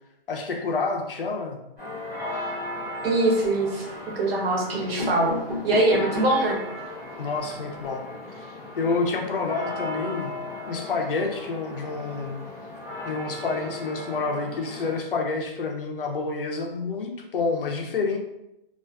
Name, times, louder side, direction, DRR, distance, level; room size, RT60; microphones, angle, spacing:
voice 1, 0.3-1.6 7.2-8.0 8.8-10.3 10.7-12.4 13.0-18.2, left 4 dB, 70° left, 2 dB, 0.6 m, -28 dB
sound 1, 1.8-15.0, left 1 dB, ahead, 0.5 m, -37 dB
sound 2, 3.0-3.6 4.3-4.4 4.7-6.5 7.0-7.1 7.3-7.4 7.7-7.9, left 3 dB, 45° right, 1.2 m, -33 dB
voice 2, 3.0-3.9 4.1-5.3 5.6-6.6, right 2 dB, 85° right, -1 dB, 0.9 m, -22 dB
2.4 x 2.4 x 2.2 m, 0.85 s
hypercardioid pair, 170°, 29 cm